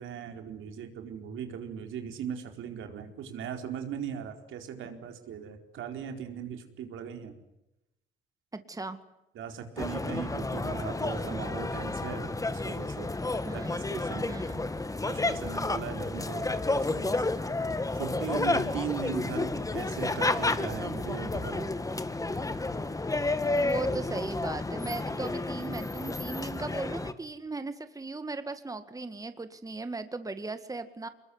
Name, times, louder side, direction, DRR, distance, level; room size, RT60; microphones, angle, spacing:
voice 1, 0.0-7.4 9.3-13.1 13.5-14.6 15.1-17.2 17.9-21.7, right 7 dB, 80° right, 5 dB, 4.4 m, -39 dB
voice 2, 8.5-9.0 13.5-13.8 14.3-14.7 23.5-31.1, right 3 dB, 15° right, 10 dB, 2.0 m, -37 dB
sound 1, 9.8-27.1, left 2 dB, 15° left, 1.7 m, -31 dB
25.0 x 21.5 x 9.7 m, 0.91 s
cardioid pair, 90°, 20 cm